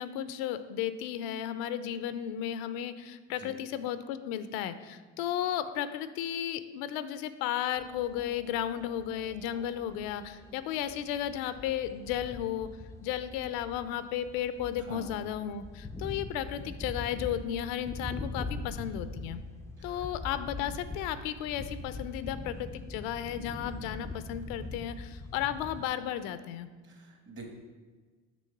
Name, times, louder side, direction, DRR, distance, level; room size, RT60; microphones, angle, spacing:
voice 1, 0.0-12.7 13.0-19.4 19.8-26.7, left 10 dB, 80° left, 12 dB, 0.5 m, -34 dB
sound 1, 7.8-25.9, left 2 dB, 10° left, 0.3 m, -43 dB
voice 2, 14.8-15.2 19.8-20.1 26.8-27.5, right 2 dB, 35° right, 2 dB, 1.3 m, -47 dB
6.1 x 3.2 x 5.8 m, 1.4 s
supercardioid pair, 95°, 34 cm